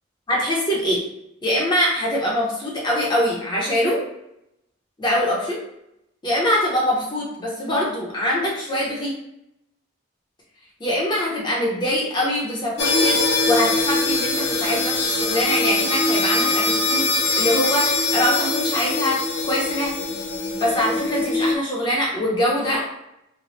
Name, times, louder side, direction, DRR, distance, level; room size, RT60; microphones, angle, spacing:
voice 1, 0.3-1.1 1.4-4.0 5.0-5.6 6.2-9.1 10.8-19.9 20.6-22.9, left 1 dB, 20° left, -4 dB, 0.8 m, -23 dB
sound 1, 12.8-21.5, left 3 dB, 55° left, 0.6 m, -22 dB
3.3 x 2.2 x 4.0 m, 0.83 s
head